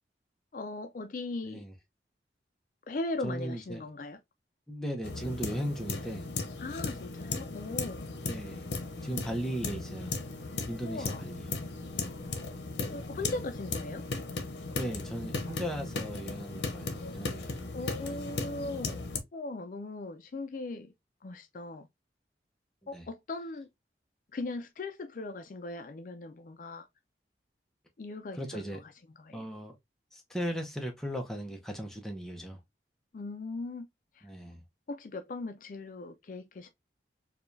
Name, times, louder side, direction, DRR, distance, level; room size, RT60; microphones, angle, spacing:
voice 1, 0.5-1.7 2.9-4.2 6.6-8.1 10.8-11.3 12.8-14.0 17.4-17.5 17.7-19.0 19.3-20.9 21.2-21.9 22.9-23.7 24.3-26.9 28.0-28.6 29.2-29.5 33.1-33.9 34.2-34.3 34.9-36.7, left 2 dB, 50° left, 0.4 m, -39 dB
voice 2, 3.2-3.8 4.7-6.3 8.3-8.7 9.0-10.2 10.7-11.5 13.1-13.3 14.7-18.4 22.9-23.0 28.4-28.8 29.3-29.8 30.1-32.6 34.2-34.6, equal, 5° left, 0.7 m, -37 dB
sound 1, 5.0-19.2, left 3 dB, 85° left, 0.8 m, -37 dB
4.8 x 2.3 x 2.6 m
head